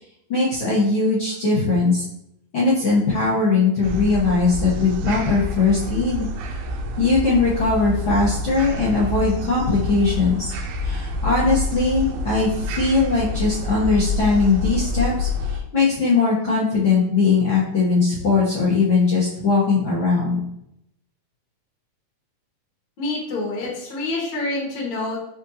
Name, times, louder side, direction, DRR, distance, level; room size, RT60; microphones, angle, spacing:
voice 1, 0.3-2.0 2.5-6.3 7.0-10.5 10.8-20.4, left 4 dB, 85° left, -10 dB, 1.1 m, -20 dB
sound 1, 3.8-15.6, left 2 dB, 80° right, 1.8 m, -27 dB
voice 2, 23.0-25.2, left 2 dB, 55° left, -3 dB, 1.4 m, -27 dB
5.1 x 3.7 x 2.8 m, 0.80 s
omnidirectional pair, 4.0 m